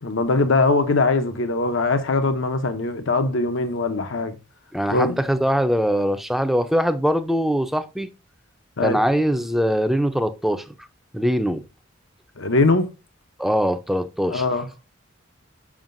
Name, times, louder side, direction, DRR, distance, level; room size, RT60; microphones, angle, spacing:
voice 1, 0.0-4.4 4.9-5.2 8.8-9.0 12.4-12.9 14.3-14.7, left 3 dB, 70° left, 0.8 m, -21 dB
voice 2, 4.7-8.1 8.8-10.7 11.1-11.6 13.4-14.4, equal, ahead, 0.5 m, -22 dB
7.3 x 5.5 x 2.6 m
head